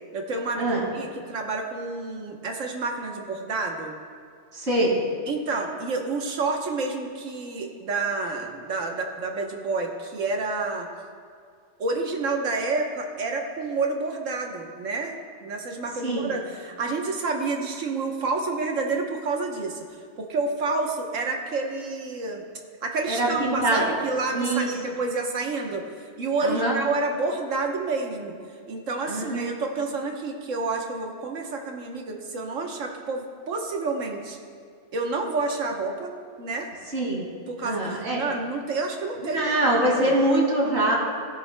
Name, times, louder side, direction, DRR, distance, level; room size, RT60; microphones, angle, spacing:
voice 1, 0.1-4.0 5.3-10.9 11.8-19.8 20.2-22.5 22.8-25.8 26.2-28.3 28.7-34.4 34.9-36.7 37.5-40.2, right 3 dB, 85° right, 2 dB, 1.5 m, -29 dB
voice 2, 4.5-5.0 16.0-16.3 23.1-23.8 24.3-24.7 26.4-26.8 29.1-29.4 36.9-37.2 37.6-38.2 39.2-41.0, right 1 dB, 60° right, -3 dB, 2.5 m, -23 dB
17.5 x 11.0 x 2.2 m, 2.2 s
omnidirectional pair, 1.3 m